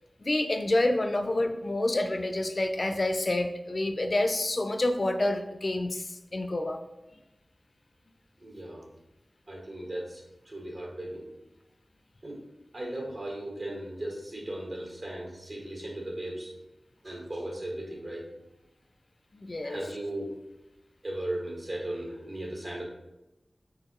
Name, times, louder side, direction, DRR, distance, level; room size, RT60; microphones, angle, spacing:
voice 1, 0.2-6.8 19.3-19.8, left 1 dB, 50° left, 8 dB, 0.4 m, -28 dB
voice 2, 8.4-8.8 9.5-11.3 12.2-12.4 12.7-16.5 17.0-18.3 19.6-20.3 21.0-22.8, right 1 dB, 60° right, -1 dB, 1.4 m, -37 dB
6.3 x 2.7 x 3.0 m, 0.96 s
cardioid pair, 40°, 0 cm